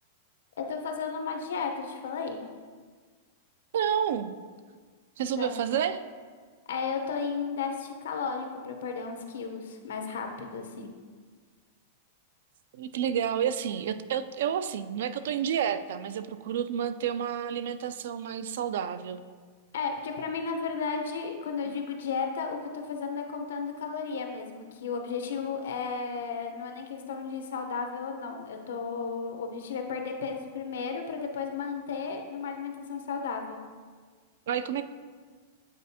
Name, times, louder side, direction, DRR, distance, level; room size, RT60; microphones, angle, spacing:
voice 1, 0.6-2.4 5.4-5.6 6.7-10.9 19.7-33.6, left 5 dB, 90° left, 4 dB, 0.8 m, -34 dB
voice 2, 3.7-4.4 5.2-6.0 12.7-19.2 21.7-21.8 34.5-34.8, right 9 dB, 70° right, 12 dB, 0.3 m, -30 dB
8.4 x 4.2 x 2.8 m, 1.5 s
supercardioid pair, 160°, 0 cm